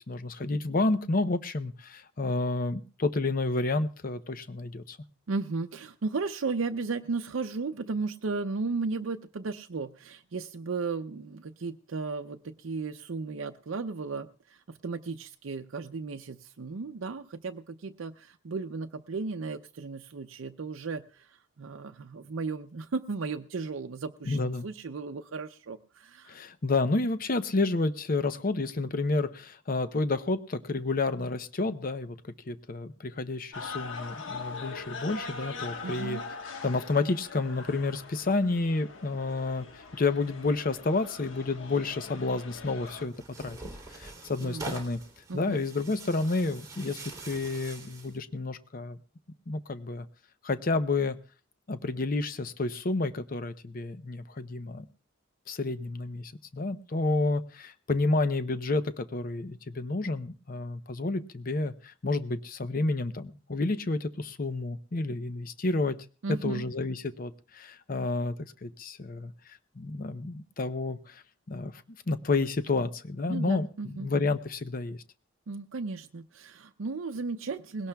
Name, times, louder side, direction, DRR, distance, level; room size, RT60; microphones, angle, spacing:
voice 1, 0.1-5.0 24.3-24.7 26.3-36.2 36.6-43.6 43.9-45.0 45.3-49.0 49.5-50.1 50.4-51.2 51.7-54.9 55.5-66.0 66.3-71.7 72.1-75.0, left 3 dB, 45° left, 11 dB, 0.7 m, -30 dB
voice 2, 5.3-26.3 35.8-36.2 44.4-44.8 45.3-45.6 66.2-66.6 73.3-74.1 75.5-77.9, right 4 dB, 85° right, 5 dB, 0.6 m, -35 dB
sound 1, 33.5-43.1, left 4 dB, 85° left, 1.4 m, -42 dB
Tearing, 42.9-48.2, right 3 dB, 20° right, 3.1 m, -44 dB
20.5 x 17.5 x 2.3 m, 0.38 s
head